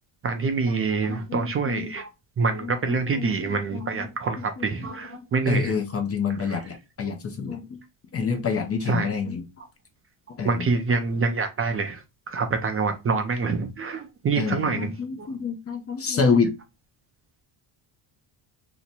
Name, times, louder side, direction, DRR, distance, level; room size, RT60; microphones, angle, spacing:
voice 1, 0.2-2.1 2.4-5.7 6.4-6.7 8.9-9.1 10.4-14.9 15.2-15.3, right 4 dB, 30° right, 0.5 m, -26 dB
voice 2, 1.1-1.9 2.6-4.0 4.6-4.7 5.1-7.8 8.1-9.4 10.4-10.7 14.4-16.5, left 5 dB, 30° left, 0.5 m, -28 dB
2.9 x 2.1 x 4.0 m
cardioid pair, 115°, 47 cm